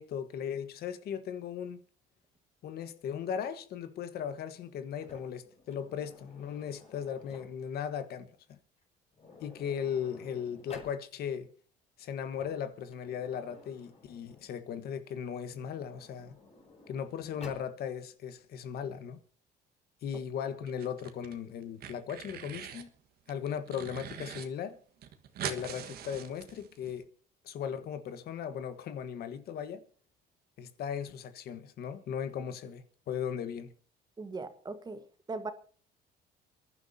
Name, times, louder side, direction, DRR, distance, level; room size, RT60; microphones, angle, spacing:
voice 1, 0.0-1.8 2.6-8.6 9.4-11.5 12.0-16.4 16.9-19.2 20.0-22.9 23.3-24.8 25.4-27.1 27.4-29.8 30.6-33.7, left 8 dB, 65° left, 1.4 m, -37 dB
Sliding door, 4.9-7.8 8.8-8.9 9.1-11.0 12.1-14.6 15.4-17.7, left 3 dB, 40° left, 5.6 m, -54 dB
sound 1, 20.7-21.3 21.6-22.9 23.3-24.5 24.7-24.8 25.0-26.9, right 9 dB, 65° right, 1.6 m, -42 dB
voice 2, 34.2-35.5, right 3 dB, 25° right, 1.4 m, -39 dB
29.5 x 11.0 x 2.8 m
cardioid pair, 110°, 17 cm